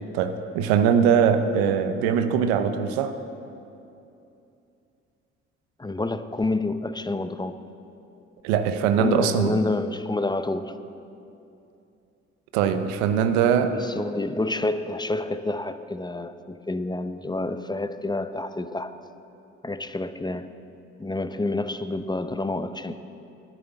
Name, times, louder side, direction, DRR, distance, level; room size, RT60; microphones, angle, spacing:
voice 1, 0.1-3.2 8.4-9.6 12.5-13.8, right 7 dB, 85° right, 9 dB, 0.8 m, -22 dB
voice 2, 5.8-7.6 9.0-10.7 13.7-19.0 19.6-20.5 21.0-23.0, left 2 dB, 15° left, 10 dB, 0.7 m, -28 dB
10.5 x 9.3 x 8.1 m, 2.7 s
hypercardioid pair, 55°, 32 cm